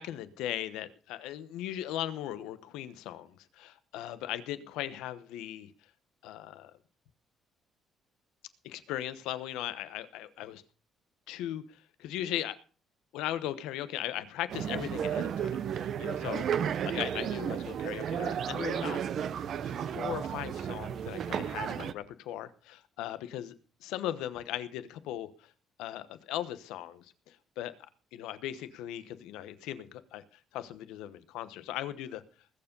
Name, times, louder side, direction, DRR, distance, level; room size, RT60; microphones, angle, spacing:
voice 1, 0.0-5.7 6.2-6.7 8.6-10.6 11.3-12.6 13.1-16.5 16.8-19.0 19.6-23.5 23.8-25.5 25.8-27.7 28.1-30.2 30.5-32.2, left 12 dB, 90° left, 13 dB, 1.1 m, -38 dB
sound 1, 14.5-21.9, right 8 dB, 60° right, 0.9 m, -33 dB
20.0 x 7.2 x 5.4 m, 0.39 s
cardioid pair, 90°, 0 cm